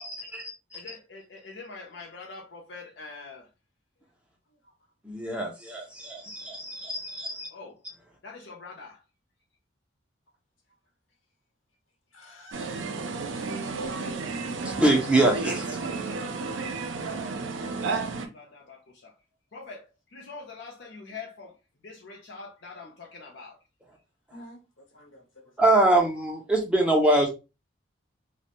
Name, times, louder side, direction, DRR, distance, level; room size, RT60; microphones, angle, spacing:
voice 1, 0.0-0.8 5.0-7.5 14.6-16.1 25.6-27.3, right 2 dB, 5° right, 0.4 m, -24 dB
voice 2, 0.7-3.5 7.5-7.8 8.2-9.0 13.8-14.2 15.8-16.5 18.1-19.2 19.5-21.6 21.8-23.6, left 4 dB, 60° left, 0.5 m, -44 dB
voice 3, 12.1-12.8 13.3-13.7 24.3-24.6 24.9-25.5, equal, 85° left, 0.9 m, -50 dB
sound 1, 12.5-18.3, right 4 dB, 70° right, 0.4 m, -32 dB
2.4 x 2.0 x 2.8 m
head